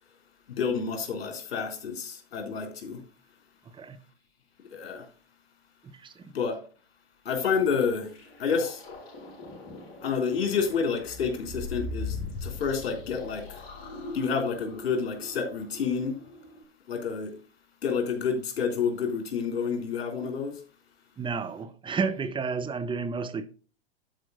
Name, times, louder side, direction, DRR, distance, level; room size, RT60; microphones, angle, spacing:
voice 1, 0.5-3.0 4.7-5.1 6.3-6.6 7.3-8.1 8.4-8.8 10.0-12.2 12.4-13.6 14.1-16.2 16.9-17.3 17.8-20.5, left 6 dB, 70° left, 3.5 m, -29 dB
voice 2, 5.8-6.3 21.2-23.5, right 5 dB, 15° right, 0.9 m, -31 dB
sound 1, 8.1-16.6, left 3 dB, 40° left, 4.8 m, -40 dB
12.0 x 5.0 x 3.9 m
hypercardioid pair, 105°, 31 cm